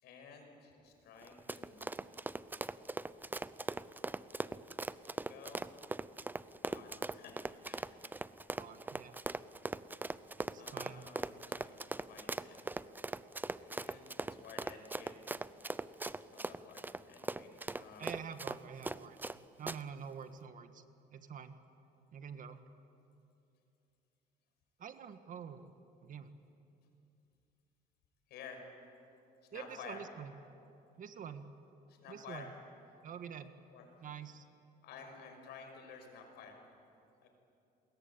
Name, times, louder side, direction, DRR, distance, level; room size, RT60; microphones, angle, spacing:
voice 1, 0.0-2.0 5.0-5.7 6.6-7.4 7.6-7.9 10.6-12.8 13.5-15.2 16.2-18.1 28.3-28.6 29.5-30.0 31.9-32.5 33.7-34.0 34.8-36.6 37.2-37.3, left 6 dB, 75° left, 3 dB, 6.1 m, -53 dB
Run, 1.2-19.4 19.7-19.8, right 2 dB, 10° right, 0.6 m, -40 dB
voice 2, 8.5-9.2 10.4-11.0 18.0-19.2 19.6-20.8 21.1-21.6 22.1-22.6 24.8-25.7 26.0-26.3 29.5-30.3 31.0-31.5 32.1-32.5 33.0-33.5 34.0-34.5, right 7 dB, 50° right, 9 dB, 1.6 m, -47 dB
29.0 x 21.5 x 8.7 m, 2.7 s
cardioid pair, 110°, 17 cm